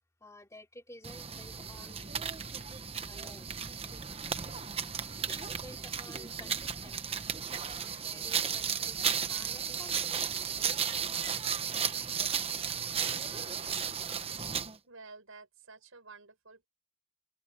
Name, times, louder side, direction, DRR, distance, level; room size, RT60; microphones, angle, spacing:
voice 1, 0.2-2.5 3.1-3.5 5.3-10.2, left 1 dB, 15° left, 3.1 m, -53 dB
sound 1, 1.0-14.8, right 7 dB, 30° right, 1.1 m, -34 dB
voice 2, 14.9-16.7, right 4 dB, 85° right, 6.6 m, -51 dB
open air
head